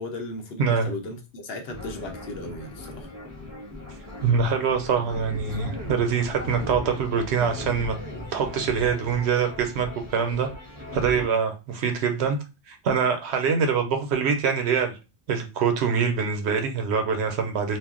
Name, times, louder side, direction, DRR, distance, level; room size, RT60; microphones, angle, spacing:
voice 1, 0.0-3.1, left 2 dB, 70° left, 4 dB, 0.9 m, -36 dB
sound 1, 1.7-11.3, left 1 dB, 15° left, 0.9 m, -38 dB
voice 2, 4.2-7.9 8.3-9.9 10.1-10.5 10.9-12.4 12.7-14.9 15.3-17.8, right 6 dB, 80° right, 6 dB, 0.9 m, -24 dB
2.4 x 2.0 x 3.6 m, 0.29 s
omnidirectional pair, 1.1 m